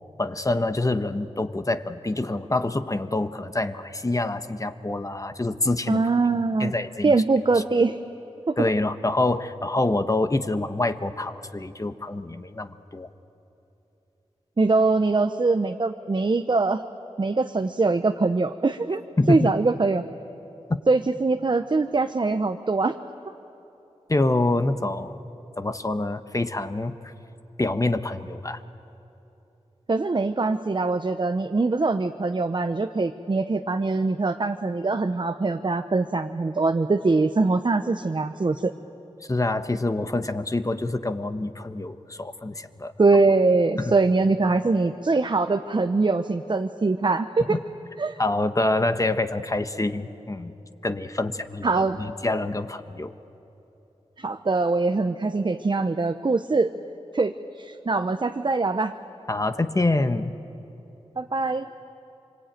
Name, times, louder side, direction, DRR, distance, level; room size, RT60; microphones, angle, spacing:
voice 1, 0.2-6.1 6.6-7.1 8.6-13.1 19.2-19.4 20.7-20.8 24.1-25.2 25.6-27.1 27.6-28.6 39.3-42.9 43.8-43.9 47.5-47.6 48.2-50.5 50.8-53.1 59.3-60.3, left 2 dB, 30° left, 9 dB, 1.1 m, -26 dB
voice 2, 5.9-6.7 7.0-8.0 8.5-8.6 14.6-16.8 17.2-19.0 19.3-20.0 20.9-23.0 29.9-38.7 43.0-47.6 48.0-48.2 51.6-52.0 54.2-56.7 57.1-58.9 61.2-61.7, right 3 dB, 40° right, 7 dB, 0.8 m, -23 dB
25.0 x 25.0 x 9.1 m, 3.0 s
cardioid pair, 60°, 12 cm